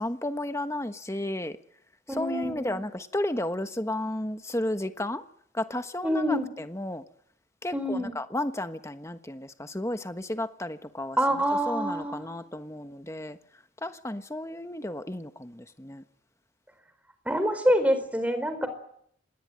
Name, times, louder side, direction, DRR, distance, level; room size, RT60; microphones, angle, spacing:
voice 1, 0.0-1.6 2.2-5.2 5.5-7.0 7.6-11.2 11.7-13.4 13.8-16.0, left 1 dB, 15° left, 1.3 m, -33 dB
voice 2, 2.1-2.8 6.0-6.5 7.7-8.2 11.2-12.3 17.3-18.7, equal, 5° right, 4.4 m, -26 dB
27.0 x 20.5 x 9.1 m
head